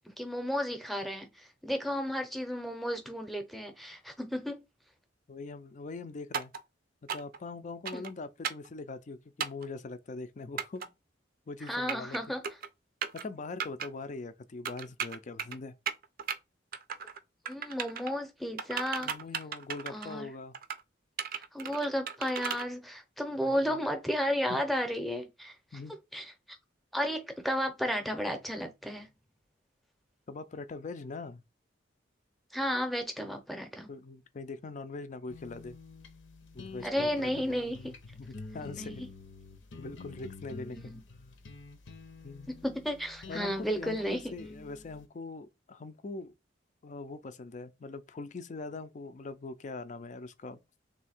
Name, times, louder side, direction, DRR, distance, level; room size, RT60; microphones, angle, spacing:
voice 1, 0.0-4.6 7.9-8.0 11.7-12.4 17.5-19.1 19.9-20.3 21.3-25.6 26.1-26.3 26.9-29.1 32.5-33.9 36.8-37.9 38.6-39.1 40.7-41.0 42.6-44.3, equal, ahead, 0.7 m, -33 dB
voice 2, 5.3-6.5 7.1-10.9 11.5-12.2 13.1-15.7 19.0-20.5 23.4-23.8 24.5-24.6 25.7-25.9 30.3-31.4 33.9-35.8 36.5-37.6 38.1-39.0 39.8-40.9 42.2-42.5 43.3-46.3 46.8-50.6, left 3 dB, 40° left, 0.4 m, -42 dB
sound 1, 6.3-6.6 7.1-7.4 7.8-8.1 8.4-8.7 9.4-9.7 10.6-10.9 11.6-12.2 12.4-12.7 13.0-13.2 13.6-13.9 14.6-15.6 15.9-16.4 16.7-17.2 17.4-18.1 18.6-20.1 20.5-20.8 21.2-22.6, right 7 dB, 50° right, 0.5 m, -36 dB
sound 2, 35.3-45.1, left 3 dB, 80° left, 0.8 m, -48 dB
3.5 x 2.7 x 4.2 m
head